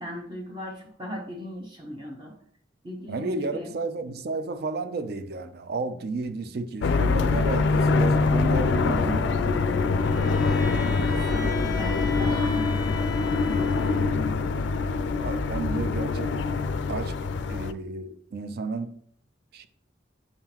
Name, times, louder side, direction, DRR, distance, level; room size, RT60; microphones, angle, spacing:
voice 1, 0.0-2.3 2.8-3.7 8.7-9.6 10.4-13.0, equal, 25° right, 0.9 m, -37 dB
voice 2, 3.1-9.0 15.2-16.4 16.9-17.2 17.5-19.0 19.5-19.7, right 3 dB, 55° right, 0.4 m, -32 dB
sound 1, 6.8-17.7, left 4 dB, 70° left, 0.3 m, -24 dB
Bowed string instrument, 10.0-14.3, left 3 dB, 20° left, 0.8 m, -37 dB
8.9 x 3.8 x 2.9 m
head